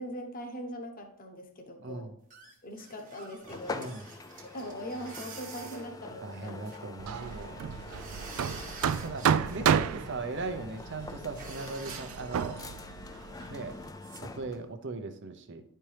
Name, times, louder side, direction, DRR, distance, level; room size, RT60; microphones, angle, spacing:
voice 1, 0.0-2.1 2.6-4.2 4.5-6.7, equal, 40° left, 3 dB, 1.0 m, -41 dB
voice 2, 1.8-2.1 3.7-4.0 6.2-8.1 9.0-12.6 13.5-13.8 14.2-15.6, right 3 dB, 55° right, 8 dB, 0.7 m, -39 dB
sound 1, 2.3-7.1 7.4-7.5 7.8-9.6 9.9-10.3 10.7-10.8 11.0-11.1 11.3-12.2 14.0-14.2, right 4 dB, 40° right, 1.2 m, -47 dB
sound 2, 3.4-14.7, left 3 dB, 15° left, 0.3 m, -45 dB
Hammer, 7.0-13.9, right 8 dB, 80° right, 0.3 m, -32 dB
10.5 x 4.4 x 3.3 m, 0.68 s
head